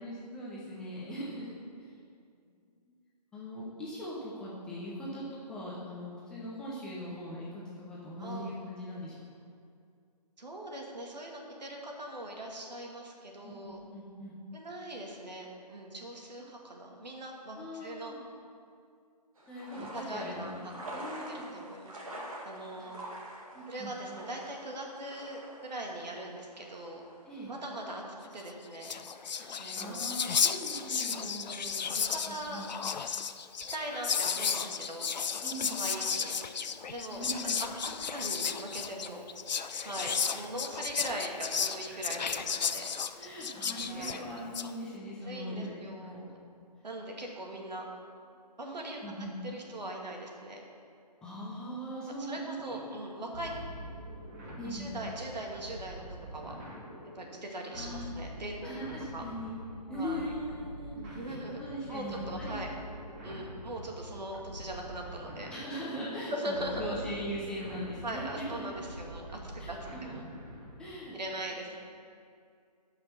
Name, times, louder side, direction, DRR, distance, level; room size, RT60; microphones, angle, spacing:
voice 1, 0.0-1.9 2.7-2.9 3.3-9.2 13.4-14.4 17.5-18.2 19.5-21.5 23.5-23.9 27.3-27.5 29.4-31.5 31.8-31.9 32.3-32.7 35.4-35.7 37.1-37.6 41.9-42.3 43.1-46.3 46.6-46.7 49.0-49.4 51.2-52.9 53.2-53.3 54.6-54.9 57.7-58.1 58.6-59.5 59.9-62.6 63.3-63.5 65.5-68.6 69.6-70.1 70.8-71.2, equal, 5° left, -7 dB, 0.6 m, -41 dB
voice 2, 8.2-8.5 10.4-13.8 14.5-18.2 19.7-20.5 20.9-22.0 22.4-23.0 23.7-27.0 27.5-28.0 28.3-29.0 29.6-30.0 31.1-32.6 33.7-35.1 35.7-36.6 36.9-37.4 37.8-39.2 39.8-42.3 42.6-42.8 43.9-44.2 45.2-46.4 46.8-47.9 48.6-49.0 49.4-50.6 52.2-53.5 54.6-56.0 56.3-56.6 57.2-58.8 59.1-59.2 59.9-60.2 60.9-61.6 61.9-62.7 63.2-65.5 66.1-67.1 68.0-70.2 71.1-71.8, right 1 dB, 80° right, 0 dB, 2.3 m, -40 dB
sound 1, 19.4-28.1, right 1 dB, 55° right, 2.0 m, -46 dB
Whispering, 28.5-28.6 28.7-44.7, left 6 dB, 85° left, 0.6 m, -33 dB
sound 2, 53.3-70.9, right 1 dB, 20° right, 1.4 m, -45 dB
10.0 x 5.7 x 7.0 m, 2.3 s
hypercardioid pair, 160°, 21 cm